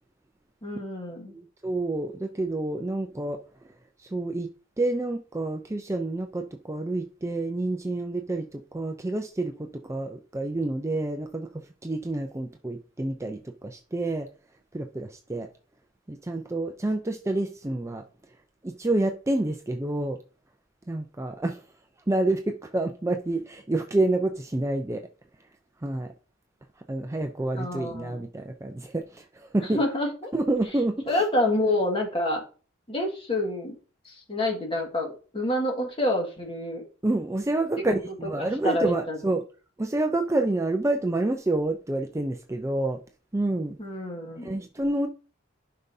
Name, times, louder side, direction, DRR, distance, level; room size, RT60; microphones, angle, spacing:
voice 1, 0.6-1.3 27.6-28.2 29.6-30.3 31.1-32.4 32.9-33.7 34.0-36.8 37.8-37.9 38.4-39.2 43.8-44.6, left 1 dB, 25° left, 1.8 m, -28 dB
voice 2, 1.3-3.4 4.1-4.5 4.8-14.3 14.7-15.5 16.1-18.0 18.6-20.2 20.9-21.6 22.1-25.1 25.8-26.1 26.9-29.8 30.3-31.2 37.0-39.4 39.8-43.0 43.3-43.8 44.4-45.1, right 2 dB, 15° right, 0.5 m, -28 dB
11.5 x 5.3 x 2.7 m
head